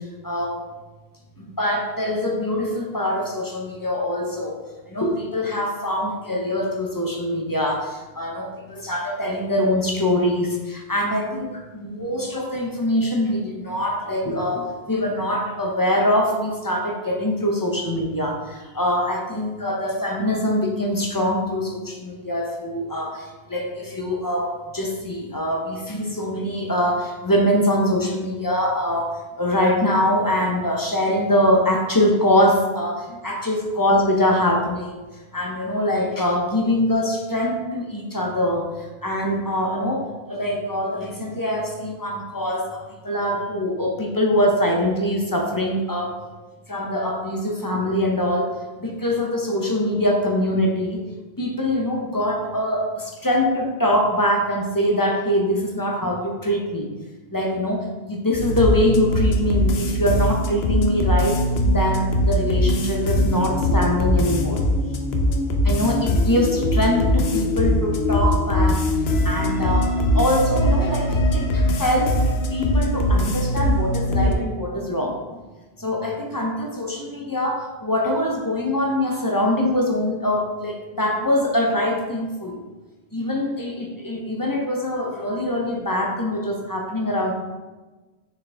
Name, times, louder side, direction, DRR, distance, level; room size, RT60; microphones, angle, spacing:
voice 1, 0.2-0.6 1.4-4.6 4.9-35.0 35.3-46.2 46.7-51.0 51.4-56.9 57.3-64.6 65.6-68.9 69.2-72.2 72.5-75.4 75.8-82.6 83.1-87.3, left 1 dB, 20° left, 0 dB, 0.9 m, -23 dB
sound 1, 58.4-74.3, left 1 dB, 85° left, 0.9 m, -21 dB
6.2 x 4.6 x 3.5 m, 1.2 s
omnidirectional pair, 1.0 m